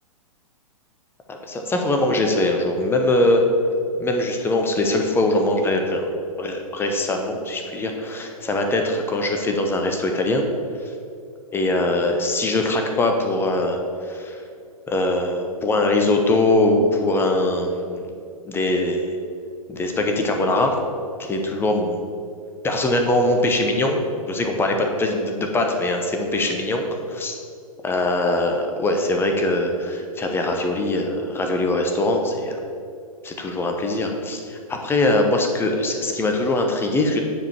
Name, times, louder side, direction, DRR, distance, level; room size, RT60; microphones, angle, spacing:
voice 1, 1.3-3.4 4.0-6.1 6.4-10.4 11.5-14.4 14.9-18.0 18.5-19.2 19.7-20.8 21.2-22.0 22.6-26.8 27.1-27.4 27.8-32.6 33.2-37.2, left 2 dB, 10° left, 3 dB, 1.0 m, -22 dB
9.4 x 5.1 x 7.2 m, 2.4 s
figure-of-eight pair, 110°, 19 cm